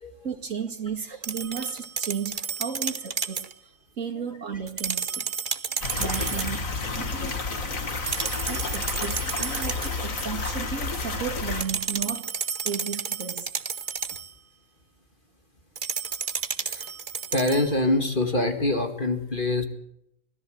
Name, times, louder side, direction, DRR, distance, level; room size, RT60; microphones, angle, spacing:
voice 1, 0.2-3.5 4.0-5.2 6.0-6.6 6.9-7.3 8.5-12.3 12.6-13.5 14.1-14.2, right 6 dB, 75° right, 7 dB, 2.5 m, -34 dB
sound 1, 1.2-3.5 4.7-6.6 8.1-10.0 11.6-14.3 15.8-17.7, right 6 dB, 40° right, 1.1 m, -31 dB
sound 2, 5.8-11.6, left 3 dB, 80° left, 2.7 m, -30 dB
voice 2, 5.9-6.3 16.6-16.9 17.3-19.6, left 2 dB, 40° left, 6 dB, 2.3 m, -25 dB
24.0 x 17.0 x 7.9 m, 0.78 s
omnidirectional pair, 1.4 m